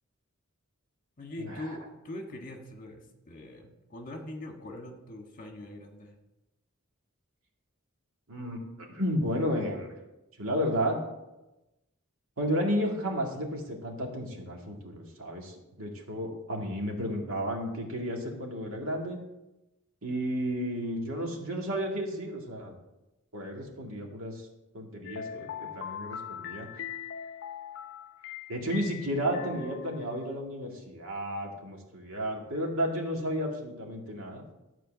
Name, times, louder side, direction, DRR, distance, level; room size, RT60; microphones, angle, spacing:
voice 1, 1.2-6.2, left 1 dB, 40° left, 3 dB, 1.5 m, -42 dB
voice 2, 8.3-9.9 10.4-11.0 12.4-19.2 20.0-22.7 23.3-24.5 24.7-26.7 28.5-34.4, equal, 70° right, 1 dB, 2.0 m, -32 dB
sound 1, 25.0-30.4, left 8 dB, 55° left, 0.6 m, -41 dB
12.5 x 4.5 x 7.4 m, 0.98 s
head